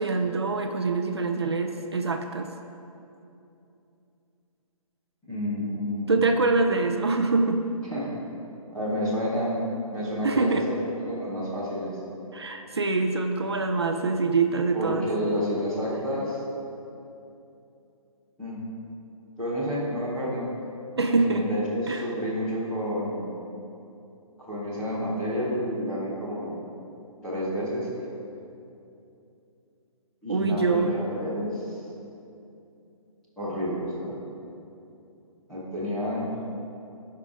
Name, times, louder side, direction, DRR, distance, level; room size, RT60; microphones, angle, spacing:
voice 1, 0.0-2.5 6.1-7.6 10.2-10.7 12.3-15.0 21.0-21.5 21.9-22.0 30.3-30.9, right 3 dB, 45° right, 5 dB, 0.5 m, -24 dB
voice 2, 5.3-6.3 7.9-8.1 8.7-9.6 9.9-10.7 11.0-11.9 14.7-16.4 18.4-18.6 19.4-20.5 21.1-23.3 24.4-26.6 27.2-27.9 30.2-31.8 33.4-34.2 35.5-36.3, equal, 5° left, -13 dB, 0.7 m, -29 dB
16.5 x 5.6 x 3.6 m, 2.7 s
hypercardioid pair, 180°, 18 cm